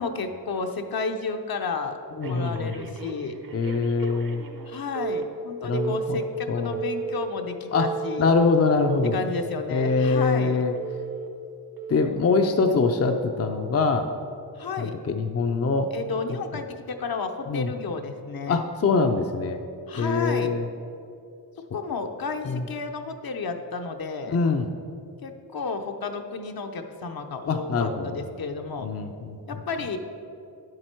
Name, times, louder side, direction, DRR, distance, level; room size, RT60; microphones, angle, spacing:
voice 1, 0.0-2.0 2.3-3.4 4.7-8.3 9.1-10.6 12.7-12.8 14.6-14.9 15.9-18.6 19.9-20.5 21.7-24.4 25.2-28.9 29.5-30.0, left 4 dB, 65° left, 5 dB, 0.8 m, -32 dB
voice 2, 2.2-2.7 3.5-4.4 5.6-6.2 6.5-6.7 7.7-7.9 8.2-9.2 9.7-10.7 11.9-14.1 14.8-15.9 17.5-17.7 18.5-19.6 20.0-20.6 22.5-22.6 24.3-24.7 27.5-28.2 28.8-29.4, left 4 dB, 40° left, 5 dB, 0.5 m, -23 dB
Telephone, 2.2-4.7 5.0-5.2 5.7-6.2 6.7-7.2 7.7-8.3 8.7-9.3 9.8-10.3 10.8-11.3 11.8-12.1, right 6 dB, 60° right, 0.9 m, -33 dB
9.9 x 7.7 x 4.5 m, 2.6 s
wide cardioid pair, 95°, 39 cm